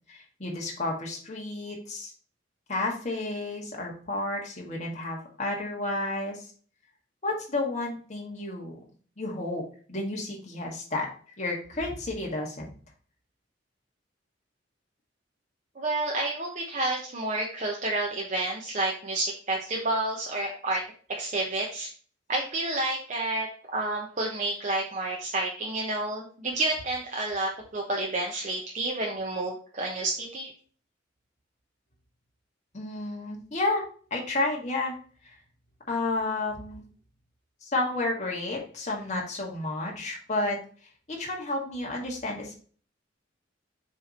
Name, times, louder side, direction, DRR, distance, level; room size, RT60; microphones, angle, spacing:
voice 1, 0.1-2.1 2.7-6.5 7.2-8.8 9.2-9.6 9.9-11.1 11.4-12.7 32.7-33.8 34.1-34.9 35.9-36.9 37.6-40.6 41.1-42.5, left 2 dB, 40° left, -1 dB, 1.9 m, -31 dB
voice 2, 15.8-20.8 21.2-21.9 22.3-23.5 23.7-30.5, right 2 dB, 40° right, -1 dB, 1.0 m, -30 dB
7.4 x 3.4 x 4.3 m, 0.43 s
head